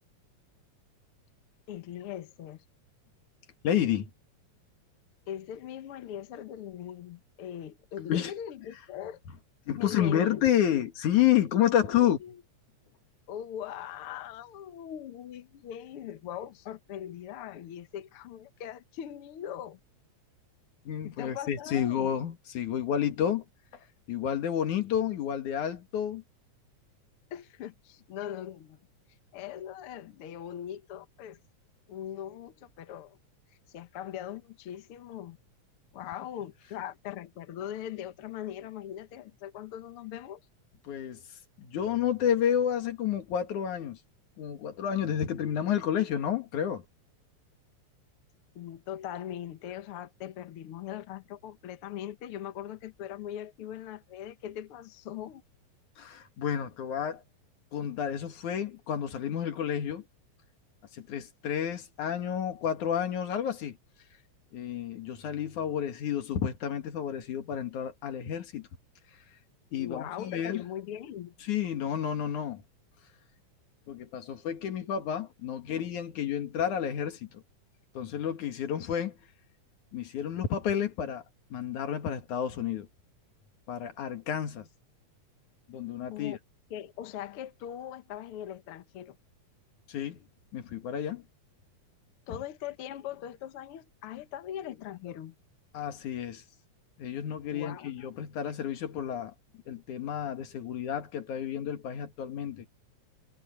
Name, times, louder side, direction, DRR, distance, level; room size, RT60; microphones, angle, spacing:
voice 1, 1.7-2.6 5.3-9.2 9.8-10.4 11.8-12.4 13.3-19.8 21.0-22.1 27.3-28.8 29.3-31.4 31.9-33.2 33.7-35.4 35.9-40.4 48.6-55.4 69.8-71.4 86.1-86.4 86.7-89.2 92.3-95.4 97.5-98.1, left 10 dB, 60° left, 1.7 m, -40 dB
voice 2, 3.6-4.1 8.1-8.3 9.7-12.2 20.9-23.4 24.1-26.2 40.8-41.2 41.6-44.0 44.4-46.8 56.0-57.2 57.7-60.0 60.9-63.8 64.5-68.7 69.7-70.6 71.4-72.6 73.9-77.4 77.9-79.2 79.9-81.2 81.5-82.9 83.7-84.7 85.7-86.4 89.9-90.2 90.5-91.2 95.7-96.4 97.0-99.3 99.7-102.7, left 9 dB, 80° left, 3.3 m, -30 dB
omnidirectional pair, 3.4 m